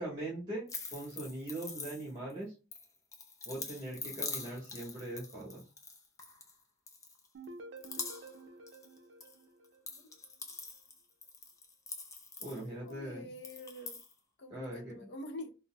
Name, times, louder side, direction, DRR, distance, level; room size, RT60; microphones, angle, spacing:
voice 1, 0.0-2.5 3.4-5.6 12.4-13.3 14.5-14.9, right 1 dB, 25° right, 1.2 m, -41 dB
sound 1, 0.7-2.3 2.7-6.5 6.9-7.4 7.8-8.4 8.7-9.3 9.6-12.9 13.4-14.1, left 4 dB, 15° left, 0.4 m, -44 dB
sound 2, 7.3-10.3, right 2 dB, 70° right, 0.5 m, -51 dB
voice 2, 12.5-14.0 14.4-15.5, left 1 dB, 60° left, 0.6 m, -46 dB
3.9 x 2.0 x 2.3 m
head